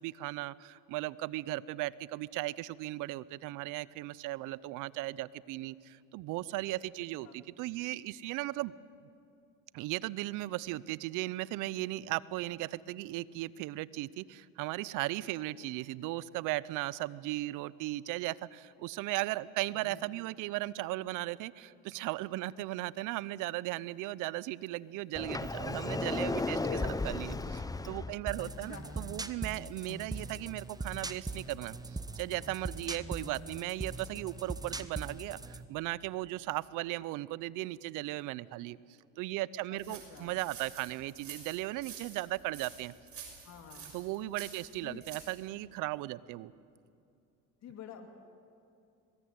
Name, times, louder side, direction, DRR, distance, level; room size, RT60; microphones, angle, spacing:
voice 1, 0.0-8.8 9.7-38.8 39.2-42.9 43.9-46.5, right 17 dB, 70° right, 20 dB, 0.8 m, -37 dB
Sliding door, 25.2-28.2, left 3 dB, 10° left, 1.0 m, -34 dB
voice 2, 26.6-27.0 28.4-29.0 29.9-30.1 33.1-33.3 39.7-40.4 43.4-43.9 44.8-45.1 47.6-48.1, left 7 dB, 55° left, 5 dB, 2.5 m, -48 dB
sound 1, 28.3-35.7, right 3 dB, 10° right, 1.2 m, -41 dB
sound 2, 39.8-45.4, right 6 dB, 45° right, 6.5 m, -49 dB
22.5 x 20.5 x 9.4 m, 2.6 s
supercardioid pair, 85°, 32 cm